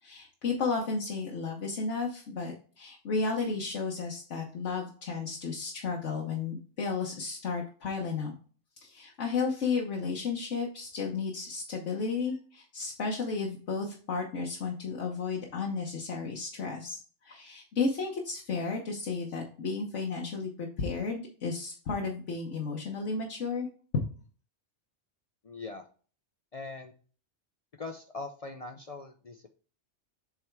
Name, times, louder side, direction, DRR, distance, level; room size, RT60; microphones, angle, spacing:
voice 1, 0.0-8.3 8.8-23.7 23.9-24.0, left 4 dB, 80° left, -1 dB, 1.3 m, -33 dB
voice 2, 25.4-25.8 26.5-26.9 27.8-29.6, left 3 dB, 45° left, 5 dB, 0.4 m, -41 dB
7.6 x 3.4 x 4.6 m, 0.40 s
omnidirectional pair, 1.2 m